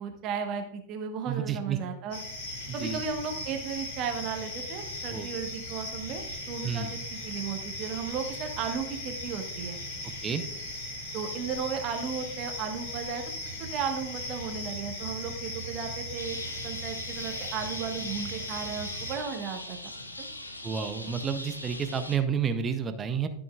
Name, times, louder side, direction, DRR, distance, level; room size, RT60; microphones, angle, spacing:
voice 1, 0.0-2.2 2.7-9.8 11.1-13.2 13.7-16.4 16.6-20.3, right 6 dB, 40° right, 5 dB, 1.3 m, -35 dB
voice 2, 1.3-1.8 2.8-3.0 5.1-5.3 6.6-6.9 10.0-10.4 20.6-23.3, right 7 dB, 20° right, 9 dB, 0.6 m, -30 dB
sound 1, 2.1-19.2, left 1 dB, 55° left, 2.3 m, -38 dB
sound 2, 16.2-22.2, left 1 dB, 85° left, 0.9 m, -41 dB
13.0 x 6.1 x 2.4 m, 0.75 s
figure-of-eight pair, 90°, 0 cm